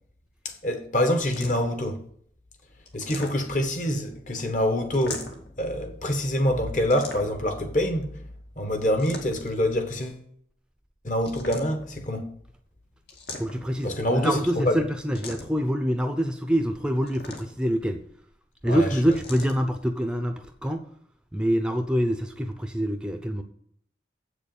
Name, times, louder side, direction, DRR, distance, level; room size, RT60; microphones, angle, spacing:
voice 1, 0.4-2.0 2.9-5.3 5.6-8.2 8.6-10.2 11.0-12.2 13.8-14.8 18.6-18.9, equal, 45° left, 1.4 m, -26 dB
sound 1, 1.2-1.8 2.9-3.7 4.9-5.6 6.9-7.5 8.8-9.6 11.2-12.0 13.1-13.8 15.1-15.7 17.0-17.7 19.1-19.6, left 3 dB, 70° left, 2.2 m, -40 dB
voice 2, 13.4-18.0 18.6-20.9 21.3-23.4, equal, 5° right, 0.6 m, -25 dB
8.1 x 6.8 x 7.1 m
head